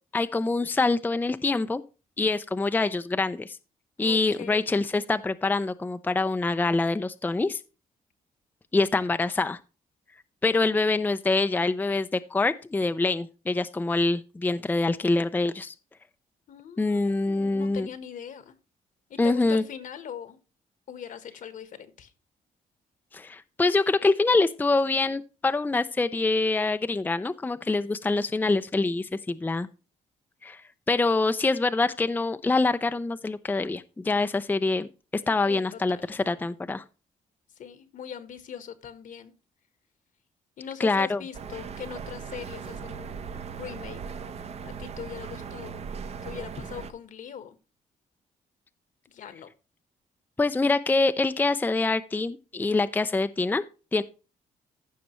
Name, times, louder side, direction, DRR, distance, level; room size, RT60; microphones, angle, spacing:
voice 1, 0.1-1.8 2.2-3.6 4.0-7.6 8.7-9.6 10.4-15.7 16.8-17.9 19.2-19.6 23.1-29.7 30.4-30.6 30.9-36.8 40.8-41.2 50.4-53.6 53.9-54.0, left 3 dB, 10° left, 10 dB, 0.5 m, -25 dB
voice 2, 4.0-4.7 16.5-18.5 19.1-20.4 20.9-22.1 35.5-36.1 37.6-39.3 40.6-43.2 43.6-44.0 44.6-45.8 46.2-47.6 49.1-49.5, left 8 dB, 65° left, 12 dB, 1.3 m, -41 dB
sound 1, 41.3-46.9, right 6 dB, 45° right, 0.9 m, -38 dB
15.0 x 5.9 x 3.1 m, 0.32 s
cardioid pair, 105°, 15 cm